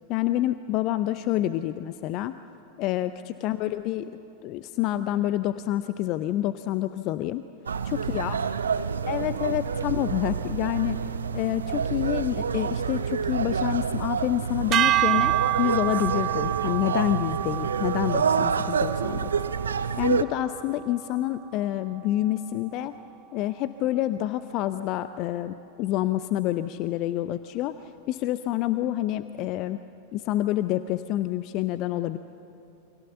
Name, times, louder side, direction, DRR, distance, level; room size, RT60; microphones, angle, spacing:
voice 1, 0.1-2.3 2.8-4.1 4.4-7.4 7.8-8.4 9.1-11.0 11.3-19.3 20.0-22.9 23.3-29.8 30.1-32.2, left 14 dB, 40° left, 13 dB, 0.7 m, -28 dB
voice 2, 3.1-3.6 7.9-9.6 11.7-11.9 23.5-24.0, left 1 dB, 80° left, 3 dB, 4.1 m, -48 dB
sound 1, 7.7-20.2, right 6 dB, 70° right, 0.8 m, -28 dB
sound 2, 14.7-21.1, right 14 dB, 35° right, 0.6 m, -28 dB
29.0 x 25.0 x 7.0 m, 2.8 s
figure-of-eight pair, 90°, 0 cm